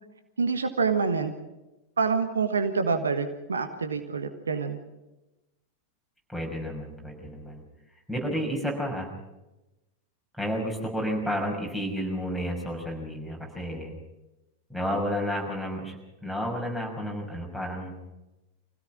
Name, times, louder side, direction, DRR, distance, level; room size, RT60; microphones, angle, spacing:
voice 1, 0.4-1.3 2.0-4.8, right 5 dB, 70° right, 8 dB, 1.4 m, -26 dB
voice 2, 6.3-7.6 8.1-9.1 10.4-13.9 14.7-16.0 16.2-18.0, equal, ahead, -1 dB, 5.9 m, -31 dB
25.0 x 17.0 x 6.1 m, 0.99 s
figure-of-eight pair, 90°, 0 cm